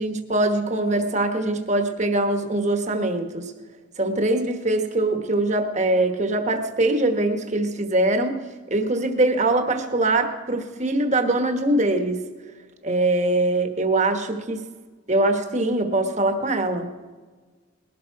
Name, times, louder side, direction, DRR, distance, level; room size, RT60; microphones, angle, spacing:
voice 1, 0.0-3.5 4.0-8.4 8.7-12.2 12.8-14.6 15.1-16.9, right 2 dB, 35° right, 6 dB, 1.3 m, -22 dB
20.0 x 12.5 x 4.7 m, 1.4 s
head